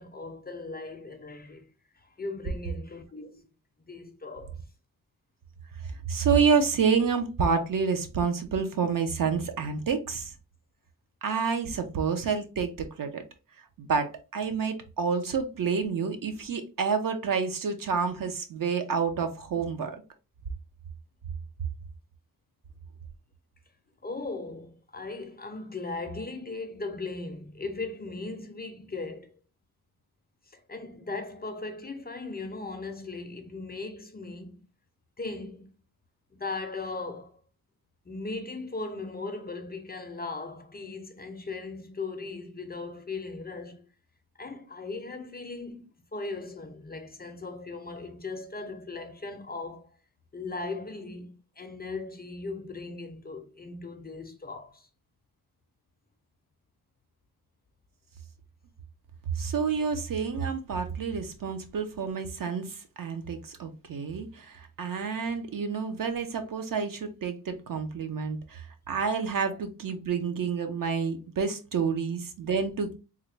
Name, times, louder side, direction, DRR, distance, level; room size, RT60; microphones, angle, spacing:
voice 1, 0.0-1.7 2.0-3.4 3.9-4.5 24.0-29.3 30.5-34.6 35.2-35.7 36.3-37.3 38.1-43.9 44.4-49.9 50.3-54.9, left 3 dB, 25° left, 0.4 m, -38 dB
voice 2, 6.0-10.3 11.2-13.2 13.8-20.0 59.4-73.0, right 5 dB, 60° right, 0.7 m, -29 dB
3.6 x 2.1 x 3.2 m
wide cardioid pair, 115°, 38 cm